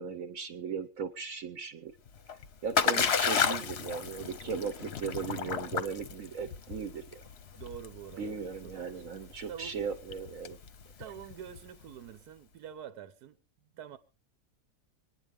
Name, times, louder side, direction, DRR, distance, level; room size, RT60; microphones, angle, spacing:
voice 1, 0.0-1.9 2.6-7.2 8.2-10.6, right 6 dB, 60° right, 1.2 m, -37 dB
Splash splatter, 2.1-11.9, left 7 dB, 50° left, 0.9 m, -33 dB
voice 2, 7.5-9.1 9.5-9.8 11.0-13.4 13.8-14.0, right 9 dB, 75° right, 1.4 m, -46 dB
26.0 x 10.0 x 3.5 m
omnidirectional pair, 1.7 m